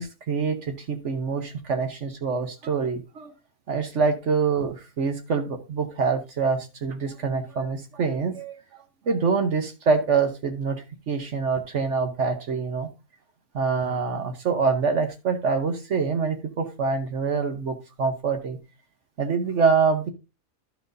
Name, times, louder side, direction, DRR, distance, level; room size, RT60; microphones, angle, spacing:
voice 1, 0.0-3.3 3.7-12.9 13.5-18.6 19.2-20.1, right 5 dB, 60° right, 6 dB, 1.2 m, -25 dB
11.5 x 6.0 x 2.6 m, 0.27 s
omnidirectional pair, 1.5 m